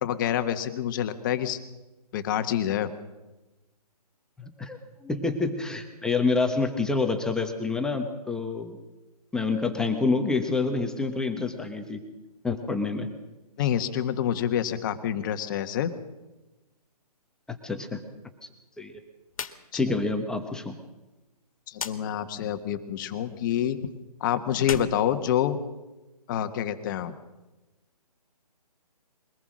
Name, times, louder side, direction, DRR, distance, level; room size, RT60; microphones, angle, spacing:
voice 1, 0.0-1.6 2.1-2.9 13.6-15.9 21.7-23.9 24.2-25.6 26.3-27.2, left 10 dB, 30° left, 9 dB, 1.4 m, -27 dB
voice 2, 4.4-8.8 9.3-12.0 12.4-13.1 17.5-18.0 18.8-18.9 19.7-20.7, left 3 dB, 5° left, 5 dB, 1.1 m, -27 dB
sound 1, 19.3-19.6 19.9-20.0 21.7-22.0 24.5-25.9, left 7 dB, 60° left, 1.9 m, -36 dB
23.0 x 18.5 x 6.3 m, 1.1 s
hypercardioid pair, 150°, 20 cm